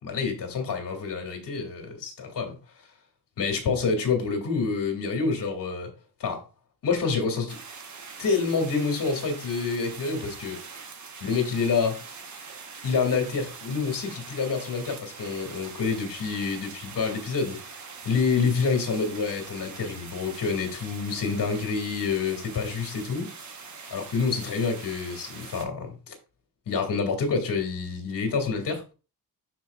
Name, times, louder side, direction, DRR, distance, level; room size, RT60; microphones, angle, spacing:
voice 1, 0.0-2.6 3.4-5.9 6.2-6.4 6.8-7.6 8.2-10.6 11.2-12.0 12.8-17.6 18.0-23.3 23.9-26.1 26.7-28.8, left 5 dB, 55° left, 2.2 m, -27 dB
sound 1, 7.5-25.6, right 5 dB, 45° right, 1.1 m, -43 dB
12.0 x 4.5 x 2.3 m
wide cardioid pair, 180°, 40 cm